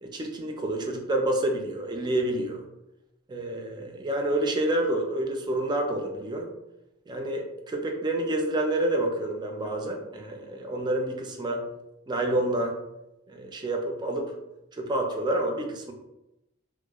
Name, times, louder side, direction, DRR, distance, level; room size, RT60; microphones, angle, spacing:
voice 1, 0.0-2.7 3.3-6.5 7.1-11.6 12.1-12.8 13.3-14.3 14.7-15.9, right 1 dB, 20° right, 2 dB, 0.3 m, -28 dB
2.8 x 2.1 x 2.2 m, 0.92 s
head